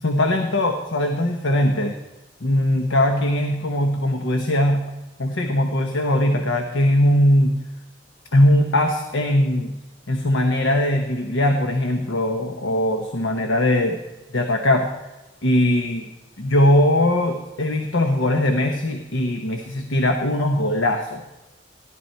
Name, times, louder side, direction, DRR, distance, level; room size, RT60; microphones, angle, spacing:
voice 1, 0.0-1.9 2.4-4.8 5.2-7.6 8.3-9.8 10.1-14.0 14.3-14.9 15.4-16.1 16.4-21.2, left 1 dB, 80° left, 4 dB, 1.1 m, -20 dB
17.0 x 12.0 x 4.5 m, 1.1 s
head